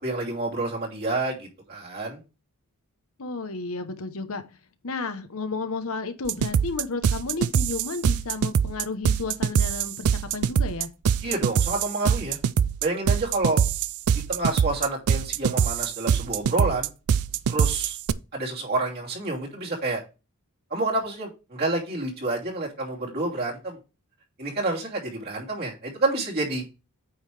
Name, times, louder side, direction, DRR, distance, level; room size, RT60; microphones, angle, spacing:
voice 1, 0.0-2.2 11.2-12.4 12.8-13.6 14.3-16.9 17.5-18.0 18.3-20.0 20.7-23.8 24.4-26.6, right 2 dB, 45° right, 2.8 m, -28 dB
voice 2, 3.2-4.4 4.8-10.9, left 3 dB, 65° left, 1.0 m, -32 dB
sound 1, 6.3-18.1, right 7 dB, 75° right, 0.4 m, -24 dB
9.0 x 5.6 x 3.3 m
head